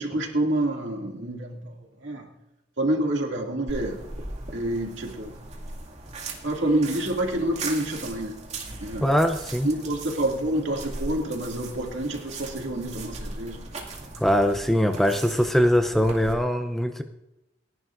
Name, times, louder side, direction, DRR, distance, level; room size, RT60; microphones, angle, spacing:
voice 1, 0.0-2.3 2.8-4.0 4.5-5.3 6.4-8.3 8.8-9.1 9.6-13.6, right 1 dB, 65° right, 0 dB, 2.4 m, -27 dB
sound 1, 3.7-16.3, right 2 dB, 35° right, 2.2 m, -38 dB
voice 2, 9.0-9.7 14.2-17.0, equal, ahead, 6 dB, 0.6 m, -22 dB
29.5 x 11.0 x 2.6 m, 0.99 s
head